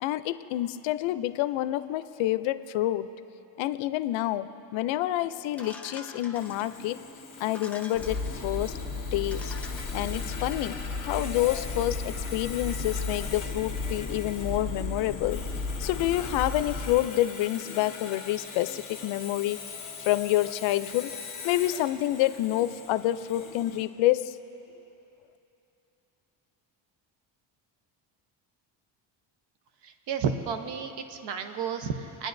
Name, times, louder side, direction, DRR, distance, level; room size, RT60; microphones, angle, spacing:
voice 1, 0.0-3.1 3.6-7.0 7.4-8.7 9.1-9.5 9.9-15.4 15.8-19.6 20.0-21.2 21.4-24.4, left 14 dB, 80° left, 13 dB, 0.6 m, -28 dB
sound 1, 5.6-6.9 7.4-8.5 9.0-9.1 9.3-10.5, left 2 dB, 5° left, 0.4 m, -46 dB
Sawing, 6.3-23.8, left 5 dB, 40° left, 1.7 m, -42 dB
sound 2, 7.9-17.0, left 3 dB, 25° right, 2.3 m, -34 dB
voice 2, 29.8-32.3, right 6 dB, 60° right, 7 dB, 0.9 m, -32 dB
25.5 x 9.9 x 2.6 m, 2.9 s
cardioid pair, 155°, 46 cm